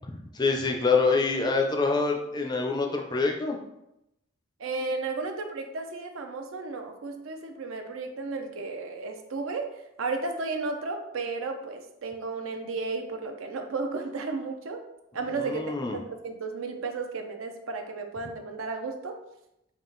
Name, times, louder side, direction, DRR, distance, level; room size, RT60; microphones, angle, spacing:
voice 1, 0.3-3.6 15.3-16.0, left 4 dB, 20° left, 2 dB, 0.4 m, -26 dB
voice 2, 4.6-9.7 10.0-14.8 15.1-15.6 15.9-19.2, right 3 dB, 85° right, 5 dB, 0.5 m, -33 dB
3.6 x 2.4 x 3.8 m, 0.86 s
head